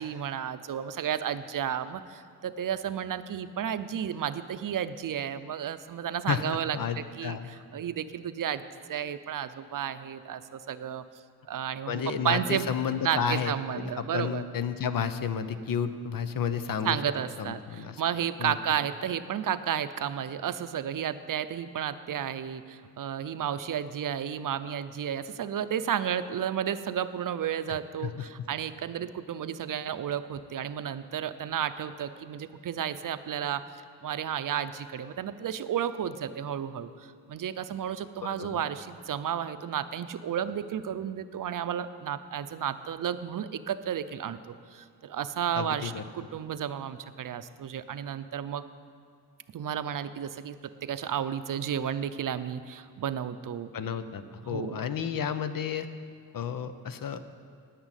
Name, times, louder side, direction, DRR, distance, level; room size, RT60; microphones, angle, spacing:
voice 1, 0.0-8.6 8.9-11.0 11.5-12.7 13.0-14.4 16.8-33.6 34.0-48.6 49.5-53.7 54.5-54.8, right 9 dB, 60° right, 12 dB, 0.6 m, -32 dB
voice 2, 6.3-7.5 11.9-17.0 17.4-18.0 18.4-18.6 28.0-28.3 38.2-38.6 45.6-46.0 53.7-55.9 56.3-57.3, left 7 dB, 65° left, 11 dB, 0.8 m, -32 dB
10.0 x 9.0 x 9.0 m, 2.3 s
wide cardioid pair, 130°, 36 cm